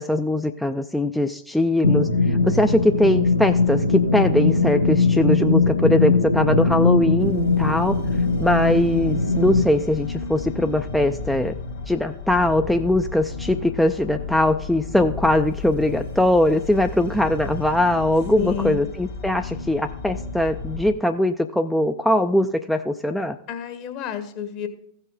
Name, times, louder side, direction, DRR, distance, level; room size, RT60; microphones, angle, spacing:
voice 1, 0.0-8.0 8.4-11.5 11.9-23.4, left 1 dB, 5° left, 6 dB, 0.4 m, -21 dB
sound 1, 1.8-9.6, left 3 dB, 85° left, 0.9 m, -20 dB
sound 2, 7.2-20.9, left 4 dB, 60° left, 1.5 m, -33 dB
voice 2, 18.4-18.8 23.5-24.7, left 9 dB, 45° left, 7 dB, 1.4 m, -30 dB
15.5 x 5.4 x 4.0 m, 0.72 s
figure-of-eight pair, 90°, 0 cm